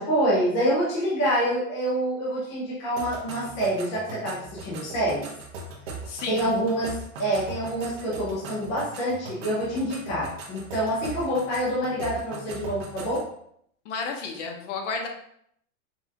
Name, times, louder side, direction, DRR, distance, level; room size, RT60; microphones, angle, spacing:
voice 1, 0.0-5.3 6.3-13.2, right 1 dB, 15° left, -7 dB, 0.4 m, -26 dB
sound 1, 3.0-13.3, right 3 dB, 45° right, 0.9 m, -40 dB
voice 2, 6.1-6.5 13.8-15.1, left 4 dB, 60° left, 3 dB, 0.9 m, -32 dB
5.4 x 2.3 x 2.8 m, 0.70 s
supercardioid pair, 180°, 40 cm